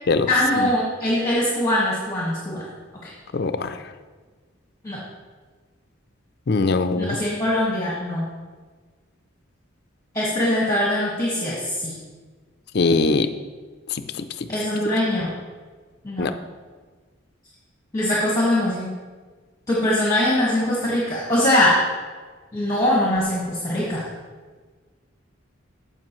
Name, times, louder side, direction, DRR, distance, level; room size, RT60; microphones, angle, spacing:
voice 1, 0.3-2.6 3.0-3.1 4.8-5.0 7.0-8.2 10.1-12.0 14.5-15.3 16.0-16.3 17.9-18.9 19.7-21.8 22.5-24.1, left 1 dB, 15° left, -6 dB, 1.6 m, -22 dB
voice 2, 3.3-3.8 6.5-7.2 12.7-13.3 13.9-14.5 16.2-16.3, left 3 dB, 50° left, 10 dB, 0.4 m, -22 dB
15.0 x 5.2 x 3.1 m, 1.4 s
head